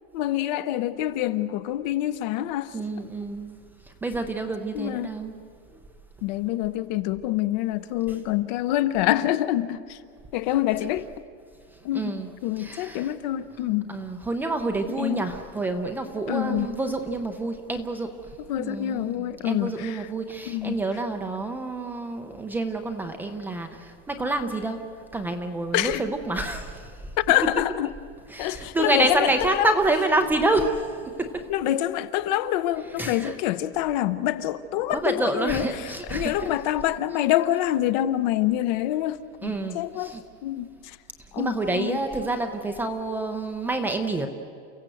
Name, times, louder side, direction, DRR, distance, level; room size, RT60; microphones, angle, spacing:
voice 1, 0.1-2.8 4.7-5.2 6.2-10.0 10.3-11.1 11.8-12.2 12.4-13.9 15.0-15.3 16.3-16.7 18.5-20.1 20.5-20.8 25.7-26.0 27.2-27.9 28.4-29.7 31.5-40.2 40.4-41.0 41.3-42.0, left 13 dB, 40° left, 0.8 m, -26 dB
voice 2, 2.7-3.6 3.8-5.4 11.9-12.3 12.6-13.1 13.9-24.8 25.1-27.1 28.3-31.5 33.0-33.3 34.9-36.5 37.1-37.2 39.4-40.2 41.4-44.3, right 2 dB, 5° right, 0.5 m, -28 dB
29.5 x 16.0 x 7.8 m
supercardioid pair, 175°, 34 cm